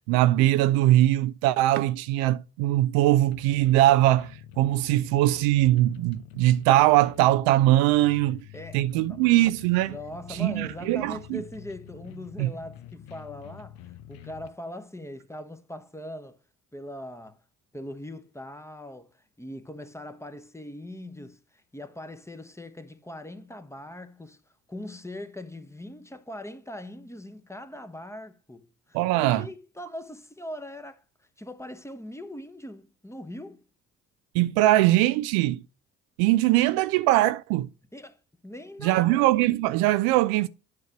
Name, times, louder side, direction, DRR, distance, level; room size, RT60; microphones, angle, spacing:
voice 1, 0.1-8.4 8.7-10.0 10.3-11.4 12.4-12.5 28.9-29.4 34.3-35.6 36.2-37.7 38.8-40.5, right 15 dB, 65° right, 0.6 m, -21 dB
sound 1, 3.3-14.5, left 11 dB, 65° left, 0.8 m, -46 dB
voice 2, 8.5-9.2 9.9-16.4 16.7-17.4 17.7-24.4 24.7-31.0 31.4-33.6 37.9-39.2, left 1 dB, 5° left, 1.0 m, -41 dB
9.6 x 6.4 x 2.9 m
hypercardioid pair, 50°, 40 cm